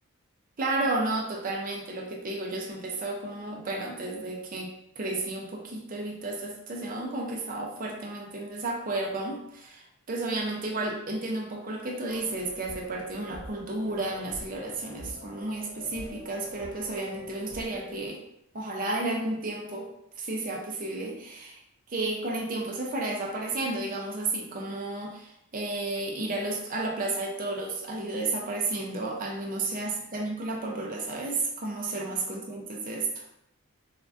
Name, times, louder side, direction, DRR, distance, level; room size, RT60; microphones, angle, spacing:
voice 1, 0.6-18.2 18.5-19.9 20.2-21.6 21.9-33.2, right 2 dB, 40° right, 0 dB, 0.5 m, -32 dB
sound 1, 12.1-18.1, equal, 55° left, 0.8 m, -45 dB
4.4 x 2.4 x 2.5 m, 0.78 s
head